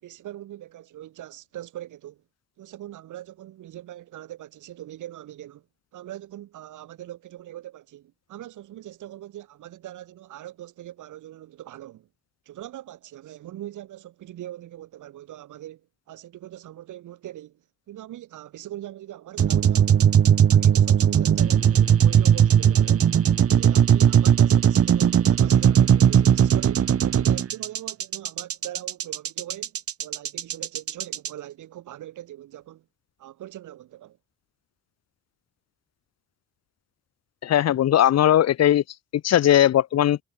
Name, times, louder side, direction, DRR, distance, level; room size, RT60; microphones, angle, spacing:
voice 1, 0.0-2.2 2.6-5.6 5.9-12.1 12.5-15.8 16.1-20.1 20.5-23.1 23.5-32.8 33.2-34.2, right 13 dB, 80° right, 6.2 m, -41 dB
sound 1, 19.4-31.3, right 9 dB, 50° right, 1.5 m, -18 dB
Bass guitar, 21.4-25.8, equal, 5° left, 7.1 m, -46 dB
voice 2, 37.4-38.8 39.2-40.2, left 11 dB, 60° left, 0.9 m, -18 dB
cardioid pair, 90°, 30 cm